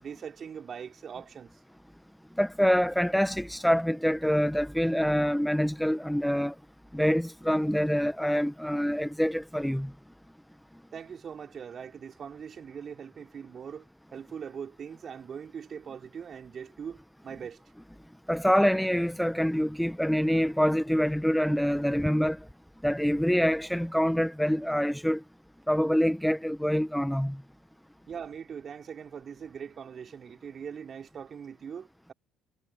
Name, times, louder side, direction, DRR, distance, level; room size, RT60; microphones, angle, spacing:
voice 1, 0.0-1.5 10.9-13.8 14.1-17.0 17.2-17.6 28.1-32.1, right 7 dB, 50° right, 4.9 m, -41 dB
voice 2, 2.4-6.5 6.9-9.9 18.3-22.4 22.8-25.2 25.7-27.4, equal, ahead, 1.2 m, -26 dB
hypercardioid pair, 65°, 0 cm